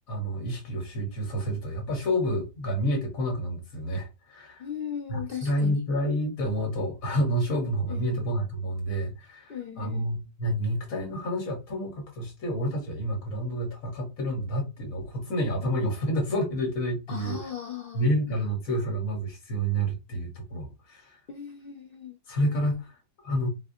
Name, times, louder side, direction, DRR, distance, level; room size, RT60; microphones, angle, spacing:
voice 1, 0.1-4.7 5.1-17.5 17.9-21.2 22.3-22.9 23.2-23.5, equal, 60° left, 1.5 m, -29 dB
voice 2, 4.6-5.8 7.9-8.2 9.5-10.1 17.1-18.1 21.3-22.2, left 8 dB, 80° left, 0.5 m, -37 dB
4.2 x 2.4 x 2.6 m
omnidirectional pair, 1.7 m